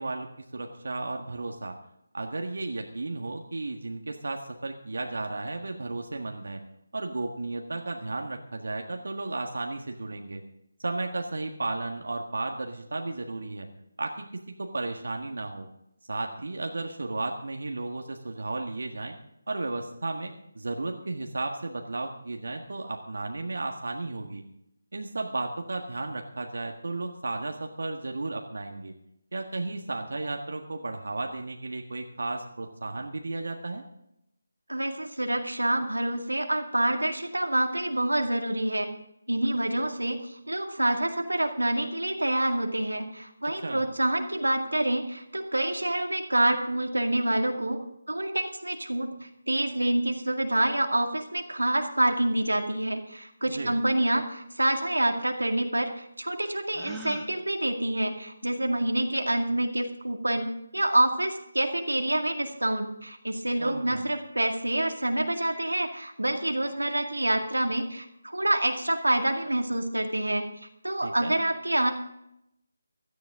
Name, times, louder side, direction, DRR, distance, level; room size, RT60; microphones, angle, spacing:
voice 1, 0.0-1.7 2.1-6.6 6.9-10.4 10.8-13.7 14.0-14.3 14.6-15.7 16.1-19.1 19.5-24.4 24.9-28.9 29.3-33.8 43.6-43.8 53.5-53.7 63.6-64.0 71.0-71.3, right 2 dB, 65° right, 3 dB, 1.6 m, -34 dB
voice 2, 34.7-38.9 39.3-49.1 49.5-70.5 70.8-71.9, right 1 dB, 85° right, 4 dB, 2.0 m, -27 dB
Gasp, 56.7-57.3, right 3 dB, 5° right, 1.6 m, -39 dB
16.5 x 13.5 x 3.7 m, 0.80 s
figure-of-eight pair, 155°, 0 cm